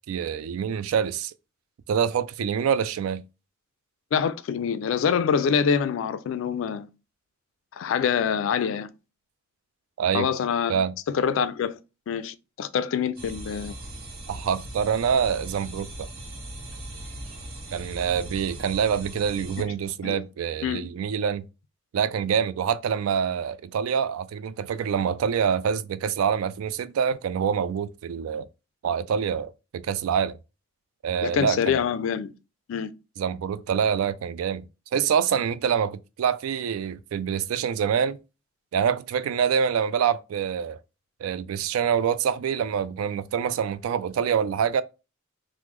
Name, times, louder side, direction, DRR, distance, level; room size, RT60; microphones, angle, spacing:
voice 1, 0.1-1.3 1.9-3.2 10.0-10.3 10.7-10.9 14.3-16.1 17.7-21.4 21.9-28.5 28.8-30.4 31.0-31.8 33.2-34.7 34.9-38.2 38.7-40.8 41.2-44.8, right 7 dB, 85° right, 0.3 m, -26 dB
voice 2, 4.1-6.9 7.7-8.9 10.1-10.8 11.1-11.8 12.1-13.8 19.6-19.7 20.0-20.2 20.6-20.8 31.2-32.3 32.7-32.9, left 7 dB, 70° left, 0.3 m, -25 dB
sound 1, 13.2-19.6, right 1 dB, 50° right, 0.7 m, -39 dB
3.1 x 2.0 x 3.4 m
head